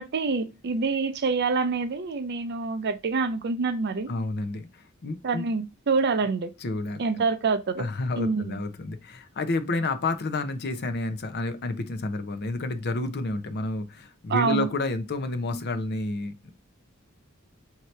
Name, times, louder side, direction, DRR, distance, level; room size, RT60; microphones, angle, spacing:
voice 1, 0.0-4.1 5.2-6.5 7.0-7.8 8.2-8.6 14.3-14.7, right 4 dB, 50° right, 0.5 m, -26 dB
voice 2, 4.1-5.4 6.6-7.0 7.8-16.5, left 2 dB, 50° left, 0.6 m, -30 dB
4.6 x 2.8 x 3.1 m
head